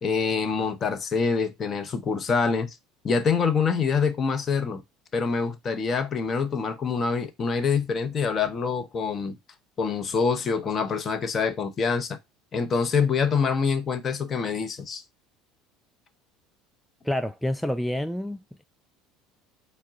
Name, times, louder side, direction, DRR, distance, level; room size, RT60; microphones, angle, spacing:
voice 1, 0.0-2.8 3.0-4.8 5.1-9.4 9.8-12.2 12.5-15.0, left 5 dB, 35° left, 0.7 m, -25 dB
voice 2, 17.0-18.6, left 1 dB, ahead, 0.3 m, -28 dB
4.5 x 2.2 x 3.7 m
figure-of-eight pair, 65°, 0 cm